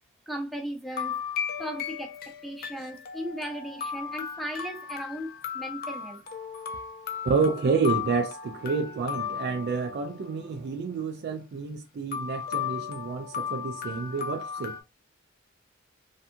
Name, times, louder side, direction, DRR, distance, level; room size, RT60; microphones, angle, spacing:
voice 1, 0.3-1.2 1.6-2.2 2.4-6.2, equal, ahead, 0.6 m, -36 dB
sound 1, 0.9-10.3 12.1-14.8, left 8 dB, 45° left, 0.5 m, -35 dB
voice 2, 7.2-14.8, right 4 dB, 50° right, 0.3 m, -29 dB
2.6 x 2.3 x 2.6 m
head